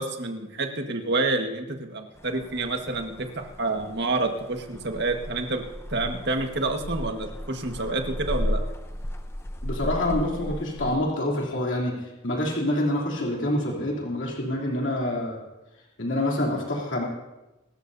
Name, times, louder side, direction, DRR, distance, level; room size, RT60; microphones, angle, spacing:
voice 1, 0.0-5.6 5.9-8.6, right 2 dB, 55° right, 4 dB, 1.6 m, -28 dB
sound 1, 2.2-11.0, equal, 10° left, 0.7 m, -35 dB
voice 2, 9.6-15.4 16.0-17.0, left 1 dB, 60° left, -3 dB, 3.2 m, -27 dB
25.5 x 13.5 x 2.7 m, 1.0 s
head